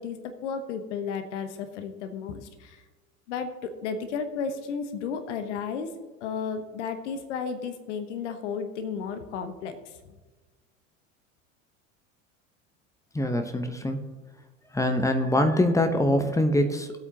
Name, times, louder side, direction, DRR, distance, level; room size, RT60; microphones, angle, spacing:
voice 1, 0.0-2.8 3.3-5.9 6.2-9.8, left 6 dB, 55° left, 8 dB, 1.1 m, -33 dB
voice 2, 13.1-14.0 14.7-17.0, left 1 dB, 10° left, 6 dB, 0.9 m, -24 dB
18.5 x 8.3 x 2.9 m, 1.3 s
figure-of-eight pair, 75°, 41 cm